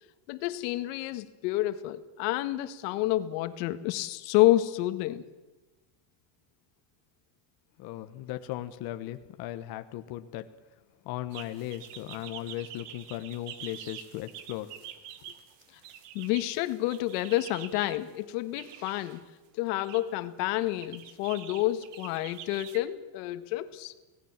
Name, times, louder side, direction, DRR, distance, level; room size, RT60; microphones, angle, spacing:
voice 1, 0.3-5.2 16.1-19.2 19.6-23.9, left 16 dB, 85° left, 11 dB, 1.8 m, -29 dB
voice 2, 7.8-10.5 11.0-14.9, left 14 dB, 50° left, 9 dB, 1.3 m, -37 dB
sound 1, 11.3-18.0 18.6-19.2 19.7-20.0 20.5-22.8, right 10 dB, 60° right, 2.3 m, -46 dB
26.0 x 18.5 x 7.4 m, 1.1 s
cardioid pair, 170°, 47 cm